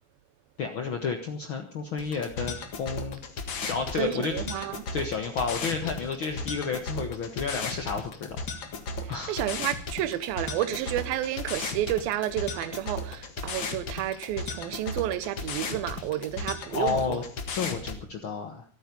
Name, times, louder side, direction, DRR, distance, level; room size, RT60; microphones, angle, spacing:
voice 1, 0.6-3.2 3.6-8.4 9.1-9.4 16.7-18.6, left 5 dB, 70° left, 1.2 m, -31 dB
sound 1, 2.0-18.0, left 3 dB, 45° left, 1.6 m, -36 dB
voice 2, 4.0-4.9 9.3-17.2, right 13 dB, 80° right, 2.7 m, -31 dB
25.0 x 9.3 x 5.3 m
omnidirectional pair, 4.3 m